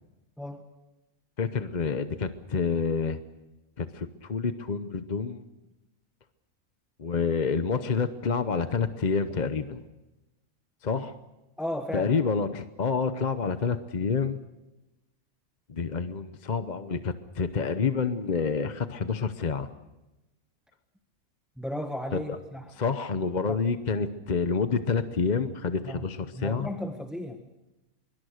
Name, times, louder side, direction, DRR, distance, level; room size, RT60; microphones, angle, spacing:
voice 1, 1.4-3.2 3.8-5.4 7.0-9.8 10.8-11.2 11.9-14.4 15.7-19.7 22.1-22.4 22.7-26.7, left 5 dB, 35° left, 10 dB, 0.8 m, -28 dB
voice 2, 11.6-12.1 21.6-22.7 23.5-23.6 25.9-26.0 26.3-27.4, left 1 dB, ahead, 5 dB, 1.3 m, -35 dB
24.0 x 23.5 x 6.5 m, 1.0 s
omnidirectional pair, 1.5 m